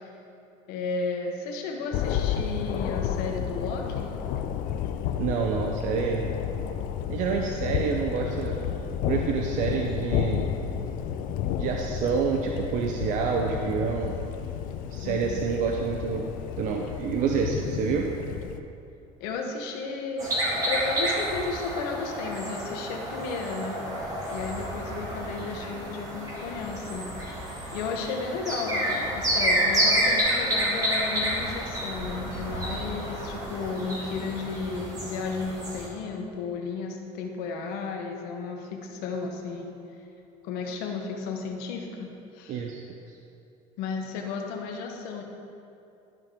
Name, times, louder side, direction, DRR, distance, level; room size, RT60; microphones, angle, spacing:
voice 1, 0.7-4.1 15.0-15.4 19.2-23.8 24.3-27.1 27.7-39.8 40.4-42.6 43.8-45.2, left 4 dB, 80° left, 2 dB, 1.1 m, -33 dB
Thunder, 1.9-18.6, left 9 dB, 65° left, 0.5 m, -31 dB
voice 2, 5.2-6.3 7.1-8.6 9.1-10.5 11.6-14.2 14.9-16.2 16.6-18.1 42.5-42.8, right 6 dB, 55° right, 1 dB, 0.6 m, -28 dB
sound 1, 20.2-35.9, right 1 dB, 20° right, 2.0 m, -29 dB
12.0 x 5.0 x 3.7 m, 2.7 s
cardioid pair, 140°, 16 cm